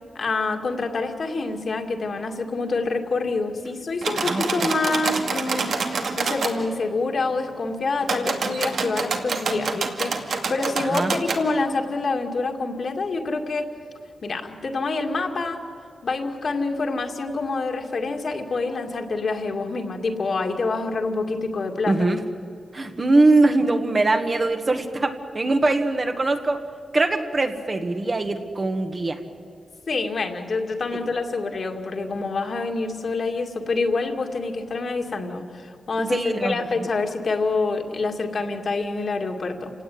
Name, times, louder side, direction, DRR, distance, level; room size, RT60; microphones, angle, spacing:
voice 1, 0.1-13.7 14.2-15.6 16.0-22.1 29.9-39.7, left 3 dB, 50° left, 3 dB, 2.3 m, -27 dB
sound 1, 4.0-6.5 8.0-11.4, right 4 dB, 70° right, 2.3 m, -27 dB
voice 2, 21.9-22.2 22.7-26.6 26.9-29.2 36.0-36.7, right 2 dB, 30° right, 6 dB, 1.5 m, -22 dB
29.0 x 17.5 x 9.4 m, 2.5 s
wide cardioid pair, 170°, 0 cm